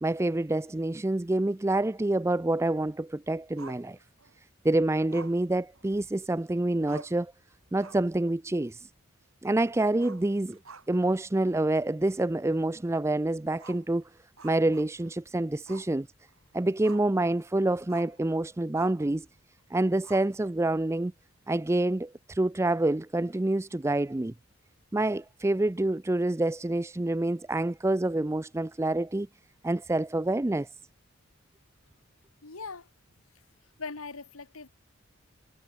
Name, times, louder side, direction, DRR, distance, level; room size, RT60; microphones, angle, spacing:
voice 1, 0.0-4.0 4.6-7.3 7.7-8.9 9.4-10.6 10.9-14.0 14.4-16.1 16.5-19.3 19.7-21.1 21.5-24.3 24.9-29.3 29.6-30.7, right 2 dB, 15° right, 0.4 m, -27 dB
Growling, 3.6-4.4 5.1-6.3 6.6-6.7 6.9-7.3 7.7-8.2 8.5-8.6 9.9-11.2 11.5-11.6 12.1-12.2 13.5-15.2 15.7-15.9 16.3-17.2 17.9-18.2 18.7-19.1 20.0-20.7, right 4 dB, 80° right, 5.4 m, -49 dB
voice 2, 32.4-32.9 33.8-34.7, left 4 dB, 90° left, 1.8 m, -40 dB
head